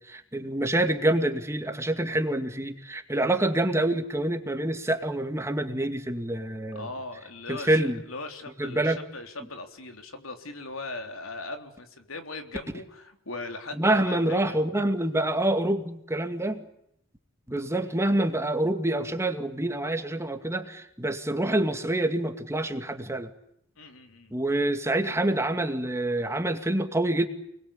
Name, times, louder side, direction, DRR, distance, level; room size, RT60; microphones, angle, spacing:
voice 1, 0.0-6.9 7.5-8.0 8.6-9.0 13.7-16.7 17.5-23.3 24.3-27.3, right 1 dB, 15° right, 6 dB, 2.4 m, -26 dB
voice 2, 6.7-14.6 23.8-24.3, left 3 dB, 85° left, 6 dB, 3.7 m, -39 dB
29.5 x 21.5 x 8.6 m, 0.77 s
head